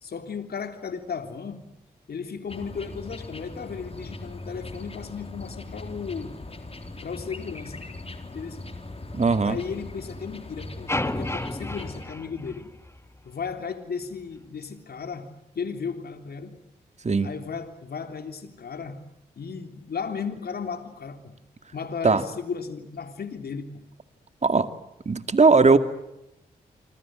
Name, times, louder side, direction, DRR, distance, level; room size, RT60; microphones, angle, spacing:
voice 1, 0.0-1.7 2.1-6.3 7.0-7.9 8.3-8.7 9.4-12.7 13.2-15.3 15.5-16.6 17.2-19.0 19.4-21.3 21.7-23.8, left 6 dB, 65° left, 8 dB, 3.3 m, -35 dB
sound 1, 2.5-12.0, left 2 dB, 35° left, 4.1 m, -40 dB
voice 2, 9.1-9.6 17.0-17.3 22.0-22.2 24.4-24.7 25.1-25.8, right 4 dB, 40° right, 10 dB, 2.3 m, -18 dB
sound 2, 10.9-13.2, left 1 dB, 15° left, 1.9 m, -31 dB
26.5 x 26.5 x 7.7 m, 0.90 s
supercardioid pair, 40°, 17 cm